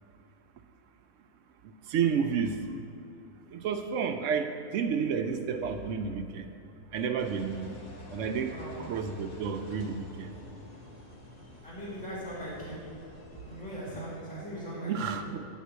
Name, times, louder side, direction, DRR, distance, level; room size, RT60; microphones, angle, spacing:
voice 1, 1.6-2.6 3.5-6.5 6.9-7.7 8.1-10.3 14.8-15.5, right 6 dB, 70° right, 7 dB, 0.9 m, -31 dB
Engine, 7.2-14.2, left 1 dB, 40° left, 0.6 m, -48 dB
voice 2, 11.6-12.8 13.5-15.2, equal, 5° left, -8 dB, 1.7 m, -39 dB
9.3 x 3.7 x 6.3 m, 2.6 s
omnidirectional pair, 1.4 m